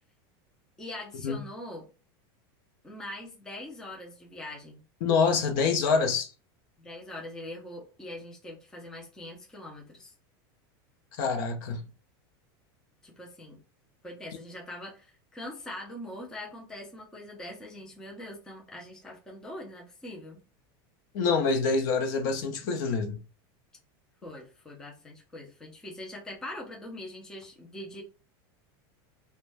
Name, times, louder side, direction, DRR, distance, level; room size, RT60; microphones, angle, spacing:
voice 1, 0.8-1.9 2.8-4.8 6.8-10.1 13.0-13.6 14.0-20.4 24.2-28.0, left 1 dB, 5° left, 0.4 m, -42 dB
voice 2, 5.0-6.3 11.2-11.8 21.1-23.2, left 4 dB, 55° left, 0.6 m, -26 dB
2.5 x 2.1 x 3.2 m
supercardioid pair, 175°, 13 cm